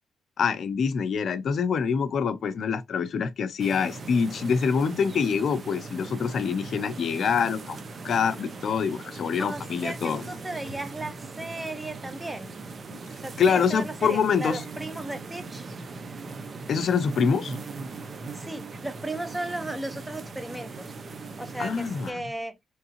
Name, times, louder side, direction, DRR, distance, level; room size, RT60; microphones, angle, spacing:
voice 1, 0.4-10.3 12.9-13.0 13.4-14.6 16.7-17.6 21.6-22.2, left 6 dB, 55° left, 0.5 m, -25 dB
sound 1, 3.6-22.1, right 3 dB, 40° right, 0.6 m, -40 dB
voice 2, 9.4-12.5 13.2-15.6 18.3-20.9 21.4-22.6, right 2 dB, 10° right, 0.9 m, -35 dB
3.5 x 3.1 x 2.9 m
cardioid pair, 90°, 0 cm